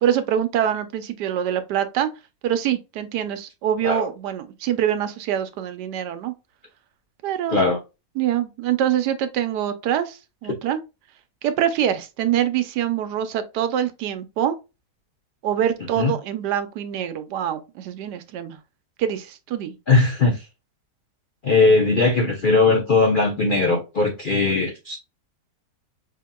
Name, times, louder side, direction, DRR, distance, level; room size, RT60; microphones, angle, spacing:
voice 1, 0.0-2.1 2.4-6.3 7.2-7.6 8.2-10.8 11.4-14.6 15.4-18.6 19.0-19.8, right 10 dB, 80° right, 1.2 m, -24 dB
voice 2, 19.9-20.4 21.4-25.0, left 3 dB, 70° left, 0.5 m, -19 dB
5.1 x 2.8 x 2.2 m
omnidirectional pair, 1.8 m